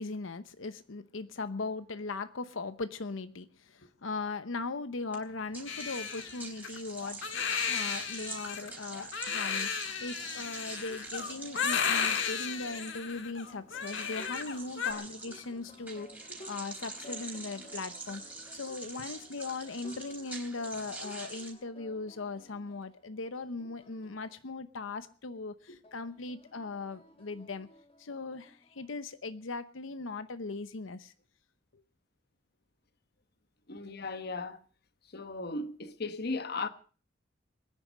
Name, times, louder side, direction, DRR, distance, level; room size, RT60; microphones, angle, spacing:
voice 1, 0.0-9.7 10.0-18.2 18.5-27.7 28.0-31.1, left 3 dB, 90° left, 0.8 m, -39 dB
sound 1, 5.1-21.5, right 3 dB, 10° right, 3.8 m, -45 dB
Crying sobbing, 5.7-14.9, left 7 dB, 75° left, 1.8 m, -34 dB
sound 2, 9.9-24.4 25.8-28.9, left 1 dB, 30° left, 2.2 m, -56 dB
voice 2, 33.7-34.6 35.1-36.7, left 3 dB, 55° left, 1.1 m, -36 dB
22.0 x 10.0 x 6.3 m
head